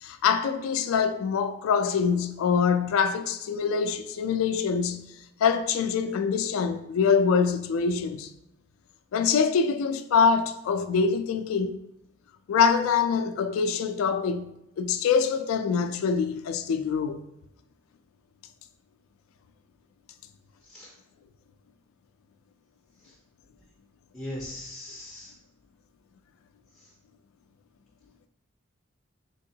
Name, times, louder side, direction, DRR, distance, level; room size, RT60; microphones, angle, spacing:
voice 1, 0.0-5.1 5.4-8.3 9.1-11.8 12.5-17.2, left 6 dB, 85° left, 0.3 m, -24 dB
voice 2, 24.1-25.3, left 1 dB, ahead, 0.4 m, -39 dB
3.5 x 2.9 x 2.7 m
head